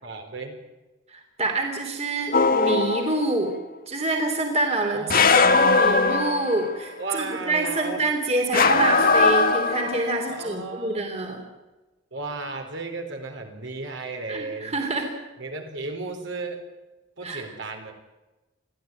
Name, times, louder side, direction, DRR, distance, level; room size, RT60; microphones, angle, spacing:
voice 1, 0.0-0.6 4.9-5.9 7.0-8.0 10.3-11.0 12.1-14.7 15.4-16.6 17.2-17.9, right 3 dB, 60° right, 3 dB, 4.4 m, -34 dB
voice 2, 1.1-3.5 3.9-11.4 14.3-15.1 17.2-17.5, right 2 dB, 30° right, 3 dB, 3.2 m, -26 dB
sound 1, 2.3-3.3 5.1-6.8 8.5-10.2, left 4 dB, 45° left, 1.5 m, -20 dB
24.0 x 15.5 x 9.3 m, 1.1 s
head